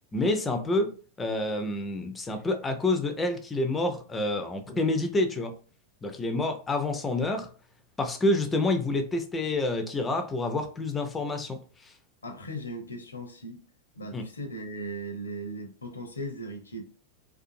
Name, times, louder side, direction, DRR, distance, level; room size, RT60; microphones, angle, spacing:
voice 1, 0.1-0.9 1.2-5.5 6.0-7.5 8.0-11.9 14.1-14.2, left 2 dB, 15° left, 6 dB, 0.5 m, -28 dB
voice 2, 12.2-13.6 14.0-16.8, right 1 dB, 75° left, 4 dB, 0.6 m, -38 dB
2.5 x 2.4 x 2.6 m, 0.39 s
figure-of-eight pair, 90°, 0 cm